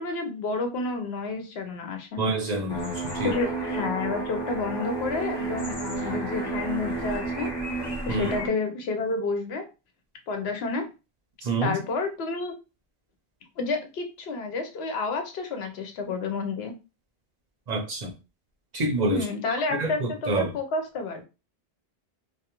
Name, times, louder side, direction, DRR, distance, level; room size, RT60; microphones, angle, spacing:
voice 1, 0.0-2.2 3.2-7.5 8.1-9.7 10.3-10.9 11.6-12.5 13.6-16.7 19.1-21.2, left 3 dB, 85° left, 0.9 m, -30 dB
voice 2, 2.2-3.3 8.1-8.3 11.4-11.8 17.7-18.1 18.7-19.2 19.7-20.5, right 2 dB, 50° right, 0.7 m, -27 dB
sound 1, 2.7-8.5, right 3 dB, 25° left, 0.7 m, -31 dB
2.3 x 2.2 x 2.9 m
omnidirectional pair, 1.0 m